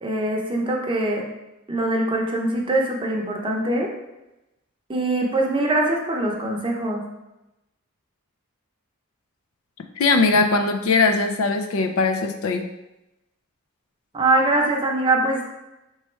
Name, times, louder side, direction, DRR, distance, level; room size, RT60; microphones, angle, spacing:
voice 1, 0.0-1.2 1.7-3.9 4.9-7.0 14.1-15.5, right 2 dB, 25° right, -1 dB, 0.7 m, -22 dB
voice 2, 10.0-12.7, left 3 dB, 65° left, 6 dB, 0.4 m, -20 dB
3.4 x 3.1 x 4.4 m, 0.95 s
head